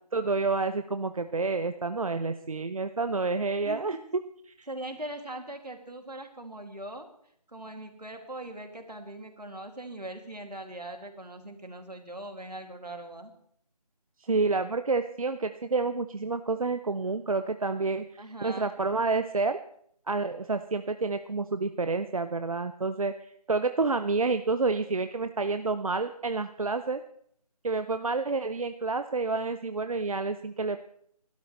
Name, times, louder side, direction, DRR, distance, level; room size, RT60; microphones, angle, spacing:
voice 1, 0.1-4.0 4.5-4.7 14.3-19.6 20.1-27.0 27.6-30.8, right 3 dB, 60° right, 9 dB, 0.7 m, -29 dB
voice 2, 4.7-7.1 7.5-13.3 18.2-18.7, right 1 dB, 80° right, 5 dB, 2.5 m, -41 dB
25.5 x 12.5 x 3.2 m, 0.65 s
figure-of-eight pair, 160°, 20 cm